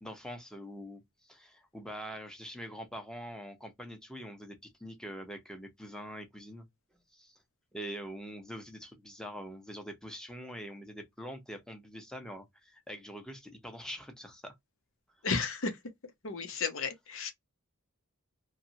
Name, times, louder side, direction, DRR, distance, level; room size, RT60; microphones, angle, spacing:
voice 1, 0.0-6.7 7.1-7.4 7.7-14.5, equal, 5° left, 0.8 m, -44 dB
voice 2, 15.2-15.8 16.2-17.3, left 4 dB, 60° left, 0.9 m, -33 dB
2.9 x 2.3 x 2.8 m
head